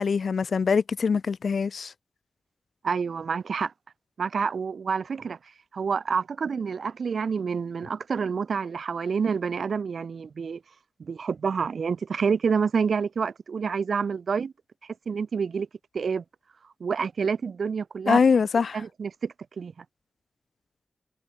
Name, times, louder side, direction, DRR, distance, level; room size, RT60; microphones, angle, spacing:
voice 1, 0.0-1.9 18.1-18.8, left 5 dB, 75° left, 0.5 m, -23 dB
voice 2, 2.8-3.7 4.2-5.4 5.7-10.6 11.0-14.5 15.1-15.7 15.9-16.2 16.8-18.2 18.7-19.8, right 6 dB, 85° right, 0.9 m, -28 dB
wide cardioid pair, 125°, 0 cm